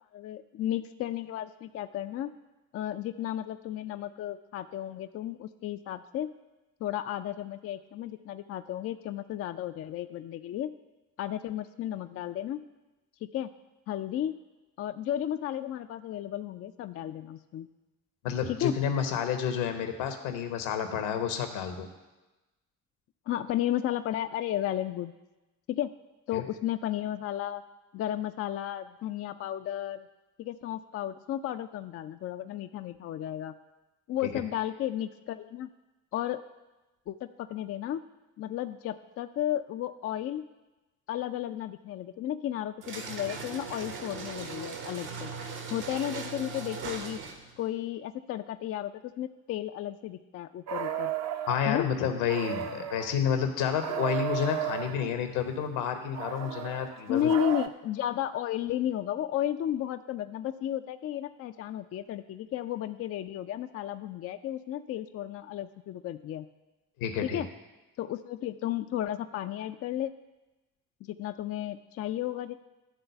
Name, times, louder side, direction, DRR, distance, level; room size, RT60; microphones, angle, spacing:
voice 1, 0.1-2.3 2.7-6.3 6.8-10.7 11.2-12.6 13.2-13.5 13.9-14.4 14.8-17.7 18.5-18.7 23.3-25.1 25.7-25.9 26.3-27.6 27.9-30.1 30.4-33.5 34.1-35.7 36.1-36.4 37.1-38.0 38.4-40.4 41.1-45.3 45.7-47.2 47.6-51.1 51.7-51.9 57.1-66.5 67.2-67.5 68.0-70.1 71.1-72.6, left 11 dB, 35° left, 9 dB, 0.4 m, -33 dB
voice 2, 18.2-21.9 26.3-26.4 34.2-34.3 51.5-57.3 67.0-67.4, left 8 dB, 70° left, 7 dB, 1.0 m, -30 dB
sound 1, 42.8-47.6, right 5 dB, 60° right, 1.2 m, -39 dB
sound 2, 50.7-51.7 52.3-53.2 53.8-55.1 56.1-57.7, right 10 dB, 40° right, 0.6 m, -34 dB
10.5 x 3.9 x 6.6 m, 1.1 s
figure-of-eight pair, 40°, 45 cm